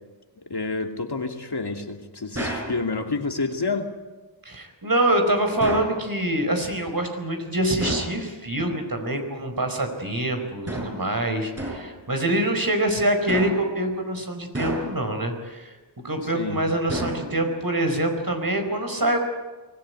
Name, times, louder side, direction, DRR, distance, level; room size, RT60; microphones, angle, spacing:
voice 1, 0.5-3.9 16.3-16.6, left 3 dB, 60° left, 4 dB, 2.6 m, -28 dB
sound 1, 2.3-2.8 5.6-6.0 7.8-8.2 10.7-11.1 11.6-12.0 13.3-13.8 14.5-15.1 16.9-17.6, right 1 dB, 30° right, 7.3 m, -31 dB
voice 2, 4.4-15.7 16.0-19.2, right 1 dB, 50° right, 5 dB, 4.8 m, -25 dB
23.5 x 16.0 x 9.7 m, 1.2 s
cardioid pair, 40°, 46 cm